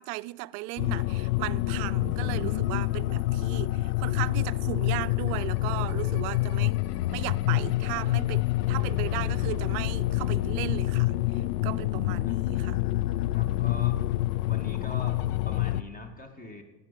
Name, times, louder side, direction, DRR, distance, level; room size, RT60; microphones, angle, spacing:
voice 1, 0.0-6.8 7.1-12.8, right 21 dB, 65° right, 0.5 m, -36 dB
sound 1, 0.8-15.8, left 16 dB, 70° left, 0.5 m, -27 dB
voice 2, 13.3-14.0 14.4-16.6, left 2 dB, 15° left, 1.9 m, -42 dB
12.5 x 9.6 x 5.2 m
hypercardioid pair, 95°, 48 cm